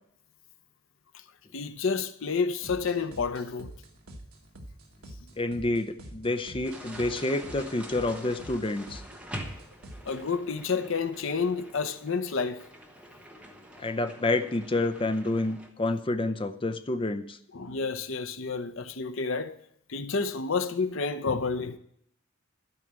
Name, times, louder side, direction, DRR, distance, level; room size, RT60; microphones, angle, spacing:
voice 1, 1.5-3.7 10.1-12.6 17.5-19.6 19.9-21.8, left 4 dB, 60° left, 0.7 m, -30 dB
sound 1, 2.6-10.3, right 1 dB, 80° right, 1.4 m, -47 dB
voice 2, 5.4-9.0 13.8-17.4, left 2 dB, 25° left, 0.6 m, -28 dB
sound 2, 6.6-15.7, equal, 5° right, 1.2 m, -45 dB
12.5 x 4.9 x 8.7 m
head